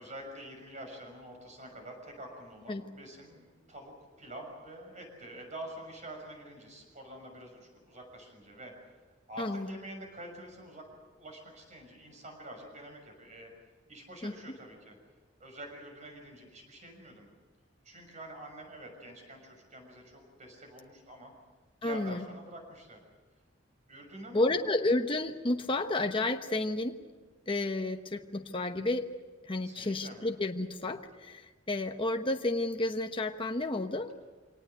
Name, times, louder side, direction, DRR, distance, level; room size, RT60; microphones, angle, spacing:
voice 1, 0.0-8.7 9.3-13.5 13.9-15.0 15.4-17.3 17.8-21.3 21.8-23.0 23.9-24.6 29.6-30.2, right 1 dB, 40° right, 3 dB, 6.4 m, -47 dB
voice 2, 9.4-9.7 14.2-14.3 21.8-22.3 24.3-27.0 27.5-29.1 29.5-34.1, left 2 dB, 25° left, 5 dB, 1.1 m, -31 dB
25.0 x 18.5 x 8.0 m, 1.3 s
head